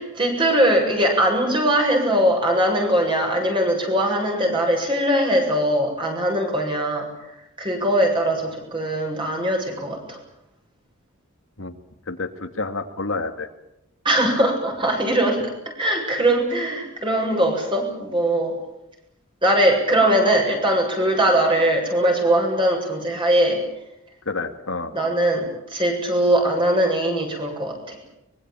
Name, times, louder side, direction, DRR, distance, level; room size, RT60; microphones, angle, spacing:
voice 1, 0.0-7.1 7.6-10.2 14.0-18.6 19.4-23.6 24.9-28.0, right 1 dB, 25° right, 2 dB, 7.6 m, -21 dB
voice 2, 12.1-13.5 24.3-24.9, left 3 dB, 70° left, 7 dB, 2.2 m, -29 dB
24.0 x 22.5 x 9.0 m, 0.85 s
head